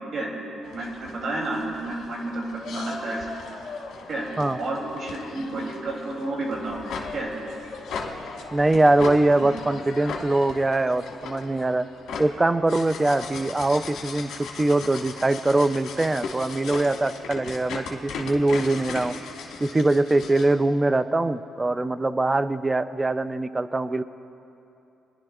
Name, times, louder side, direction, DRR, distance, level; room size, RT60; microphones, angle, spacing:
sound 1, 0.6-20.5, left 4 dB, 75° left, 1.3 m, -38 dB
voice 1, 0.7-3.4 4.1-4.3 4.6-6.8 7.1-7.3, right 2 dB, 60° right, -2 dB, 2.8 m, -30 dB
voice 2, 8.5-11.9 12.2-19.1 19.6-24.0, right 2 dB, 20° right, 13 dB, 0.4 m, -22 dB
24.5 x 11.0 x 2.3 m, 2.8 s
cardioid pair, 90°, 0 cm